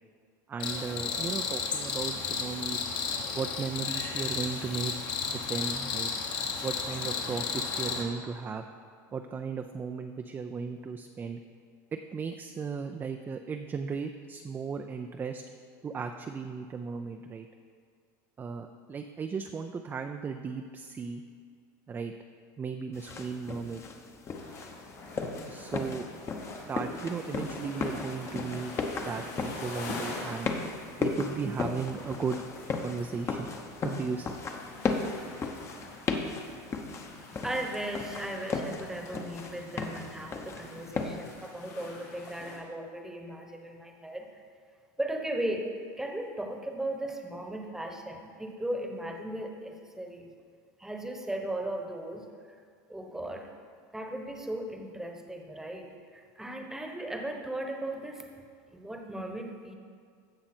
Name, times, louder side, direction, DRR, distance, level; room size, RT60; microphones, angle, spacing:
voice 1, 0.5-2.8 3.3-4.9 5.3-6.1 6.6-7.4 7.7-8.6 9.1-11.4 12.1-15.4 15.8-17.5 18.4-21.2 21.9-22.1 22.6-23.8 25.5-26.1 26.7-30.5 31.0-32.4 32.8-33.5 33.8-34.4, right 5 dB, 20° right, 6 dB, 0.4 m, -36 dB
Cricket, 0.6-8.0, left 5 dB, 50° left, 1.3 m, -33 dB
sound 1, 22.9-41.3, left 4 dB, 30° left, 0.9 m, -36 dB
sound 2, 24.3-42.6, left 2 dB, 85° left, 2.9 m, -45 dB
voice 2, 37.4-44.4 45.0-45.7 46.0-50.3 50.8-52.3 52.9-53.5 53.9-58.3 58.7-59.7, right 1 dB, 5° right, 3 dB, 1.1 m, -37 dB
15.5 x 5.7 x 4.4 m, 2.1 s
supercardioid pair, 120°, 10 cm